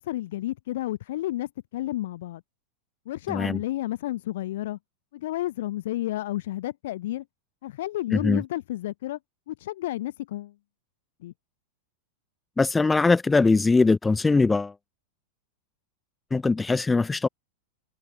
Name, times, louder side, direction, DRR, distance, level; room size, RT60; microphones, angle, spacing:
voice 1, 0.1-2.4 3.1-4.8 5.1-7.2 7.6-9.2 9.5-10.5 11.2-11.3, left 15 dB, 55° left, 1.0 m, -31 dB
voice 2, 3.3-3.6 8.1-8.4 12.6-14.7 16.3-17.3, left 3 dB, 10° left, 0.8 m, -21 dB
figure-of-eight pair, 90°, 0 cm